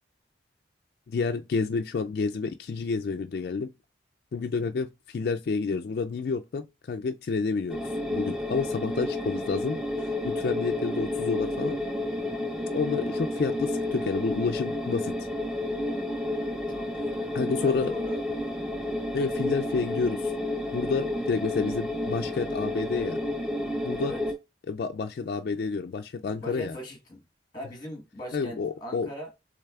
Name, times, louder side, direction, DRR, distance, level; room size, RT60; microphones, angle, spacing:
voice 1, 1.1-3.7 4.3-7.8 8.1-11.8 12.7-15.3 17.3-17.9 19.1-20.3 20.7-23.2 23.8-24.2 24.7-26.8 28.3-29.1, left 4 dB, 55° left, 0.3 m, -29 dB
sound 1, 7.7-24.3, left 1 dB, 5° right, 0.7 m, -31 dB
voice 2, 8.5-8.9 16.7-17.3 17.6-18.5 21.1-21.4 24.0-24.2 26.4-27.2 27.5-29.3, equal, 20° left, 1.3 m, -41 dB
6.5 x 3.2 x 2.3 m
head